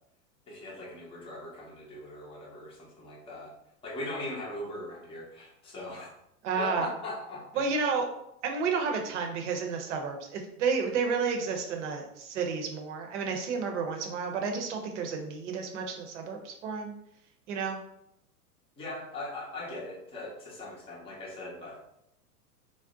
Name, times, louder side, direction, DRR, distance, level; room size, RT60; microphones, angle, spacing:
voice 1, 0.5-3.6 3.8-6.1 6.6-7.8 18.8-21.8, left 1 dB, 10° left, -4 dB, 0.7 m, -40 dB
voice 2, 6.4-6.9 7.6-8.1 8.4-16.9 17.5-17.8, right 5 dB, 50° right, 3 dB, 0.7 m, -31 dB
2.6 x 2.1 x 3.6 m, 0.78 s
figure-of-eight pair, 95°, 46 cm